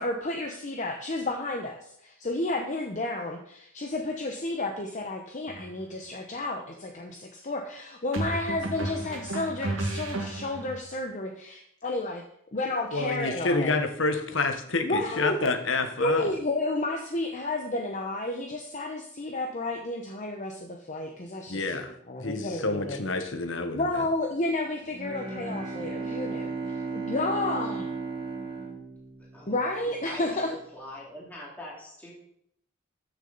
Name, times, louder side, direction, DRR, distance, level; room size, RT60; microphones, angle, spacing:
voice 1, 0.0-12.2 12.5-13.8 14.8-15.4 16.0-23.0 23.7-27.9 29.5-30.5, left 2 dB, 35° left, 3 dB, 0.8 m, -31 dB
Effect Drum, 5.5-5.7 8.1-10.8, right 2 dB, 75° right, 1.9 m, -33 dB
voice 2, 12.9-16.2 21.5-23.8, left 3 dB, 65° left, 7 dB, 1.2 m, -28 dB
Bowed string instrument, 24.9-29.8, right 4 dB, 25° right, 1.4 m, -35 dB
voice 3, 30.1-30.4 30.7-32.1, left 1 dB, 10° left, -5 dB, 2.5 m, -43 dB
13.5 x 6.6 x 4.0 m, 0.72 s
head